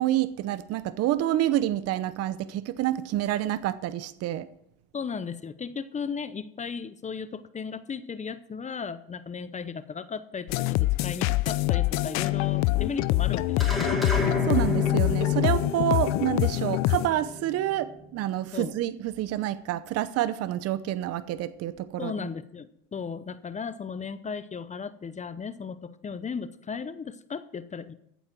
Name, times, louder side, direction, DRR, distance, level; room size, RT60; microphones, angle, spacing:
voice 1, 0.0-4.5 14.5-22.3, right 13 dB, 50° right, 15 dB, 0.8 m, -28 dB
voice 2, 4.9-14.1 15.8-15.9 18.5-18.7 22.0-27.9, left 6 dB, 25° left, 13 dB, 0.8 m, -36 dB
sound 1, 10.5-17.1, left 18 dB, 60° left, 0.6 m, -25 dB
sound 2, 13.6-18.2, left 1 dB, ahead, 4.2 m, -32 dB
14.0 x 8.2 x 6.0 m, 0.73 s
supercardioid pair, 95°, 31 cm